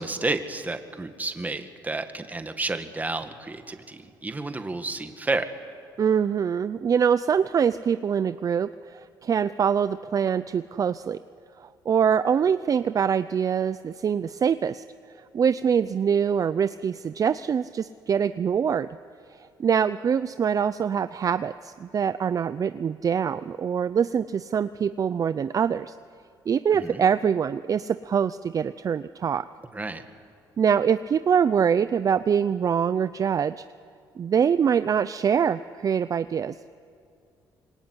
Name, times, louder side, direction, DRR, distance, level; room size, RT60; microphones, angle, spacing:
voice 1, 0.0-5.5 26.7-27.0 29.7-30.0, right 3 dB, 20° right, 7 dB, 2.0 m, -31 dB
voice 2, 6.0-11.2 11.6-14.8 15.3-18.9 19.4-26.0 26.5-29.4 30.6-33.6 34.2-36.7, right 7 dB, 40° right, 13 dB, 0.6 m, -24 dB
26.0 x 23.0 x 9.8 m, 2.4 s
cardioid pair, 100°, 9 cm